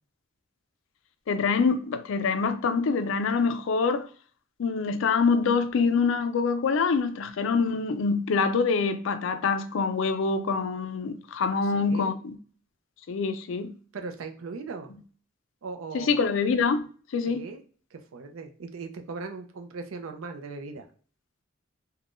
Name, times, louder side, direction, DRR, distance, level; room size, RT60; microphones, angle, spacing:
voice 1, 1.3-4.1 4.6-12.4 13.1-13.7 15.9-16.9 17.1-17.5, left 5 dB, 70° left, 0.4 m, -25 dB
voice 2, 11.5-12.2 13.9-14.9 15.6-16.2 17.3-17.6 17.9-20.9, right 4 dB, 85° right, 0.5 m, -39 dB
3.5 x 2.2 x 2.4 m
head